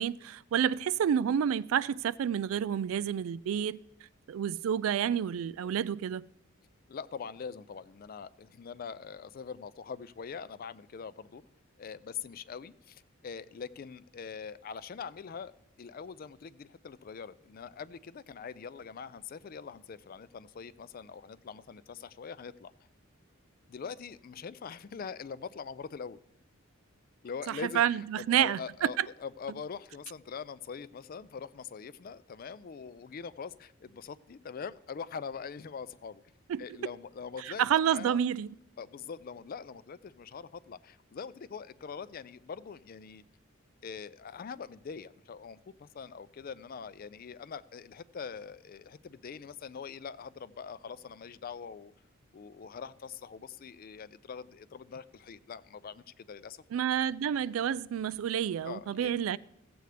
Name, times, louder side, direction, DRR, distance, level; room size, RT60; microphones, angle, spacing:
voice 1, 0.0-3.8 4.3-6.2 27.5-29.1 36.5-36.6 37.6-38.5 56.7-59.4, right 9 dB, 80° right, 0.3 m, -29 dB
voice 2, 6.9-11.4 11.8-15.5 15.8-22.7 23.7-26.2 27.2-36.2 36.6-37.6 37.9-38.2 38.8-43.2 43.8-51.9 52.3-56.6 58.6-59.4, left 6 dB, 45° left, 0.4 m, -43 dB
15.5 x 7.9 x 3.3 m
head